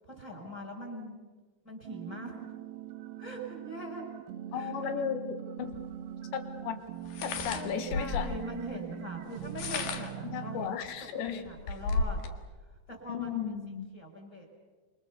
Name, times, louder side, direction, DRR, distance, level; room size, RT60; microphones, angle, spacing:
voice 1, 0.1-1.2 1.6-2.3 3.2-4.0 4.5-4.9 7.5-12.2 12.9-13.4 13.9-14.5, equal, 15° left, 2 dB, 5.6 m, -42 dB
sound 1, 1.8-10.7, right 11 dB, 70° right, 2.7 m, -42 dB
voice 2, 4.5-5.8 6.3-6.8 7.2-8.3 10.2-11.4 13.1-13.9, left 8 dB, 75° left, 9 dB, 3.9 m, -35 dB
sound 2, 5.7-5.8 7.1-8.4 9.4-10.2 10.9-11.0 11.3-12.4, left 3 dB, 60° left, 2.9 m, -33 dB
27.0 x 24.5 x 7.0 m, 1.3 s
omnidirectional pair, 5.2 m